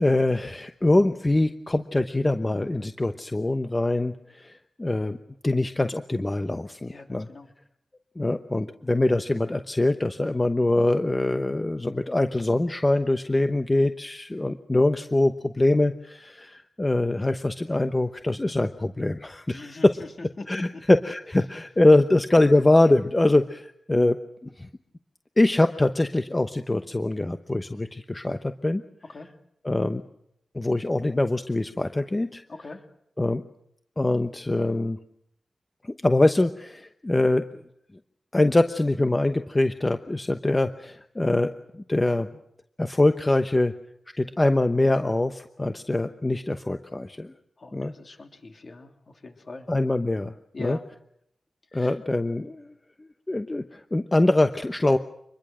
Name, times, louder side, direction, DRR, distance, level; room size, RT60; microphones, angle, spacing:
voice 1, 0.0-5.2 5.4-7.3 8.2-19.9 20.5-24.7 25.4-28.8 29.6-30.0 30.5-32.4 33.2-33.4 34.0-35.0 35.8-37.6 38.3-41.5 41.9-42.3 42.8-43.7 44.2-47.3 47.7-47.9 49.7-50.3 50.6-50.8 51.7-52.7 53.0-55.0, left 2 dB, 25° left, 8 dB, 1.0 m, -23 dB
voice 2, 6.9-7.5 19.5-20.8 29.1-29.3 32.6-32.8 47.6-49.7 50.5-50.8 51.7-51.9, left 3 dB, 50° left, 3 dB, 3.3 m, -41 dB
25.5 x 21.5 x 6.3 m, 0.75 s
cardioid pair, 70°, 0 cm